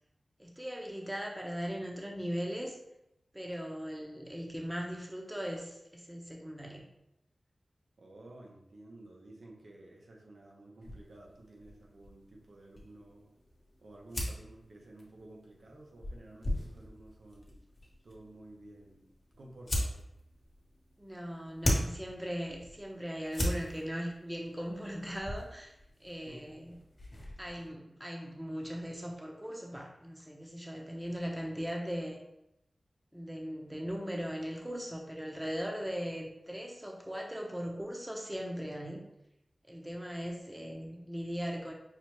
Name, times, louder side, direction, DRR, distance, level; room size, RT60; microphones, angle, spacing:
voice 1, 0.4-2.8 3.3-6.8 21.0-25.7 26.0-26.8 27.4-32.2 33.1-39.0 39.7-41.7, equal, 10° right, 0 dB, 0.8 m, -39 dB
voice 2, 8.0-13.3 13.8-17.6 18.0-19.1 19.3-20.0 26.2-26.6, right 2 dB, 80° right, -1 dB, 0.9 m, -53 dB
sound 1, 10.8-27.7, left 1 dB, 55° left, 1.1 m, -40 dB
5.6 x 2.3 x 3.1 m, 0.85 s
wide cardioid pair, 55°, 0 cm